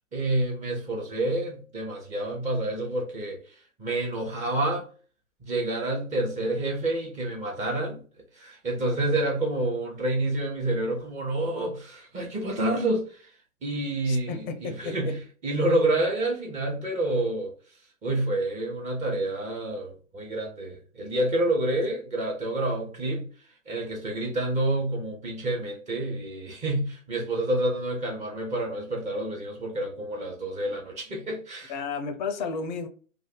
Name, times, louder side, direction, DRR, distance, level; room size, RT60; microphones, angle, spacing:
voice 1, 0.1-4.8 5.5-8.0 8.3-13.3 13.6-15.1 15.4-17.5 18.0-23.3 23.7-31.7, right 1 dB, 15° right, 0.9 m, -28 dB
voice 2, 14.0-15.2 31.7-32.9, left 5 dB, 35° left, 0.5 m, -32 dB
2.6 x 2.3 x 3.8 m
hypercardioid pair, 115°, 41 cm